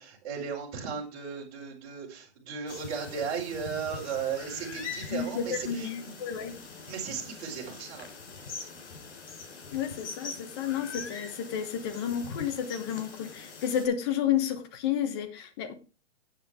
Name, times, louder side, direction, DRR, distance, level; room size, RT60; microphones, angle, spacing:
voice 1, 0.0-6.1 6.4-6.5 6.9-8.1, right 6 dB, 35° right, 4.8 m, -36 dB
sound 1, 2.7-13.9, left 5 dB, 80° left, 4.0 m, -43 dB
voice 2, 5.1-6.6 9.7-15.7, left 9 dB, 20° left, 1.1 m, -31 dB
11.0 x 9.5 x 3.6 m
hypercardioid pair, 175°, 35 cm